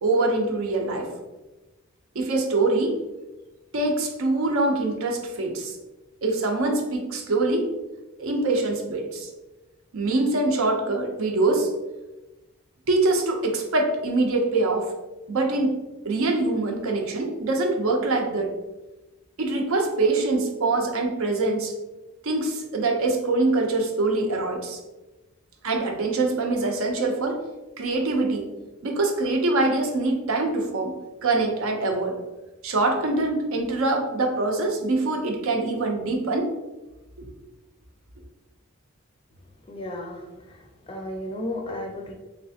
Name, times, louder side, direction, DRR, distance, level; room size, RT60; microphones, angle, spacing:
voice 1, 0.0-1.1 2.1-3.0 3.7-5.7 6.2-7.7 8.2-9.3 9.9-11.7 12.9-14.9 15.3-15.8 16.1-18.5 19.4-21.7 22.2-24.8 25.6-27.4 27.8-28.5 28.8-30.9 31.2-32.2 32.6-36.5 37.2-37.3, right 2 dB, 70° right, 3 dB, 0.6 m, -24 dB
voice 2, 39.7-42.1, left 1 dB, 25° left, 1 dB, 0.4 m, -34 dB
3.2 x 2.9 x 2.7 m, 1.1 s
head